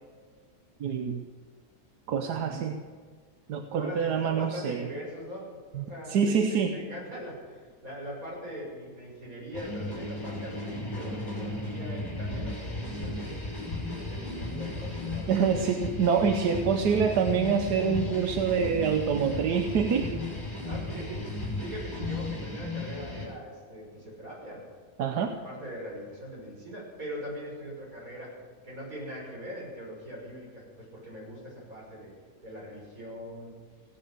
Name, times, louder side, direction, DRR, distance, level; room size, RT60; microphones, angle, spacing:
voice 1, 0.8-1.3 2.1-2.7 3.5-4.9 5.7-6.8 15.3-20.2 25.0-25.3, right 6 dB, 90° right, 5 dB, 1.5 m, -26 dB
voice 2, 2.3-2.6 3.7-13.4 13.9-15.7 20.6-21.3 21.6-24.6 25.3-28.3 28.6-32.1 32.4-33.5, equal, 60° right, -4 dB, 6.6 m, -41 dB
sound 1, 9.5-23.2, left 2 dB, 30° left, 6.0 m, -35 dB
17.0 x 9.6 x 7.8 m, 1.6 s
omnidirectional pair, 1.7 m